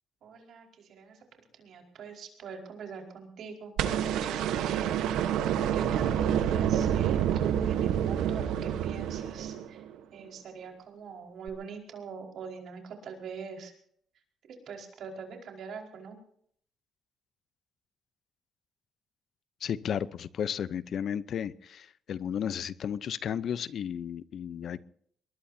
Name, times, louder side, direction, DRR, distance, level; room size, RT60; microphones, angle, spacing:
voice 1, 0.2-1.2 1.6-4.9 5.7-9.8 10.1-13.7 14.5-16.2, right 5 dB, 70° right, 4.9 m, -43 dB
sound 1, 3.8-10.0 11.5-11.6, right 9 dB, 90° right, 1.2 m, -28 dB
voice 2, 19.6-24.8, left 8 dB, 60° left, 0.7 m, -33 dB
23.5 x 21.0 x 2.8 m
cardioid pair, 90°, 0 cm